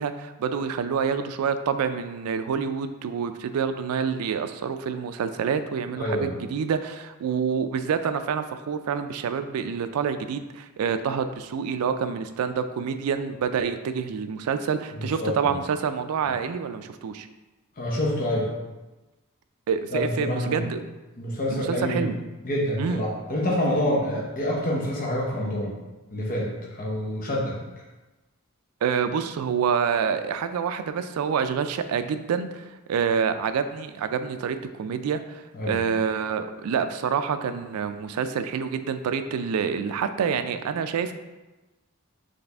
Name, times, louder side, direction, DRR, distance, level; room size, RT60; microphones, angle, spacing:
voice 1, 0.0-17.3 19.7-20.8 21.5-22.2 22.8-23.0 28.8-41.1, right 6 dB, 75° right, 10 dB, 0.3 m, -27 dB
voice 2, 6.0-6.3 14.9-15.6 16.3-16.4 17.8-18.5 19.9-20.6 21.2-22.1 22.4-25.7 26.1-26.5 26.8-27.6 35.5-35.8, left 1 dB, 40° left, -4 dB, 0.8 m, -27 dB
4.1 x 3.3 x 3.4 m, 1.1 s
head